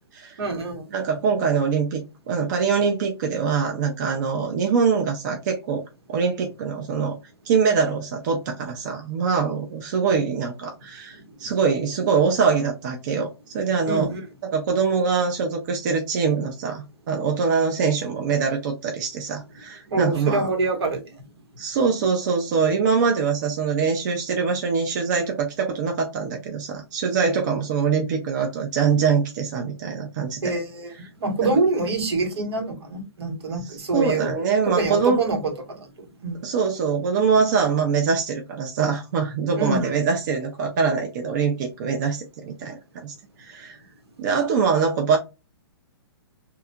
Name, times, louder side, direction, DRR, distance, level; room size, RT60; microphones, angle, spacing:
voice 1, 0.4-0.8 13.8-14.2 19.9-21.0 30.4-30.9 31.2-34.4 34.6-36.4 39.6-39.9, right 3 dB, 75° right, 1.1 m, -25 dB
voice 2, 0.9-5.8 6.1-7.2 7.4-13.3 13.5-14.1 14.5-20.5 21.6-30.4 31.4-31.5 33.9-35.2 36.4-43.8 44.2-45.2, right 5 dB, 45° right, 0.6 m, -23 dB
2.8 x 2.3 x 2.2 m
hypercardioid pair, 155°, 14 cm